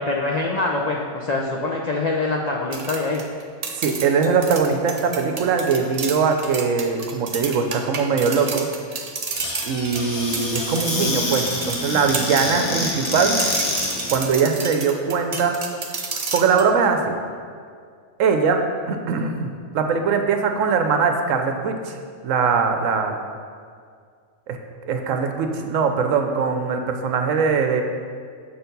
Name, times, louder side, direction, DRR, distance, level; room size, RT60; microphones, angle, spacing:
voice 1, 0.0-3.2, left 2 dB, 65° left, -1 dB, 0.4 m, -24 dB
sound 1, 2.7-12.5 12.8-16.7, right 4 dB, 50° right, 0.4 m, -31 dB
voice 2, 3.8-8.7 9.6-13.4 14.1-15.6 16.3-17.2 18.2-18.6 18.9-22.0 22.2-23.2 24.5-24.6 24.8-27.8, right 5 dB, 70° right, 5 dB, 1.0 m, -21 dB
Squeak / Cupboard open or close, 9.3-14.2, left 1 dB, 35° left, 0.8 m, -26 dB
7.2 x 4.5 x 5.2 m, 2.1 s
omnidirectional pair, 1.4 m